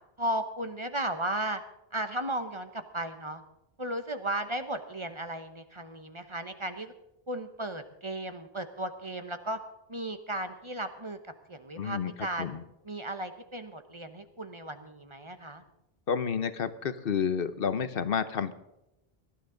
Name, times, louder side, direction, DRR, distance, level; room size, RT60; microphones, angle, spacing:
voice 1, 0.2-1.6 1.9-3.4 3.8-6.9 7.3-9.6 9.9-11.2 11.5-12.5 12.8-15.6, right 1 dB, 30° right, 8 dB, 1.0 m, -35 dB
voice 2, 11.8-12.6 16.1-18.5, left 7 dB, 65° left, 13 dB, 1.0 m, -30 dB
18.5 x 12.5 x 3.8 m, 0.89 s
omnidirectional pair, 1.0 m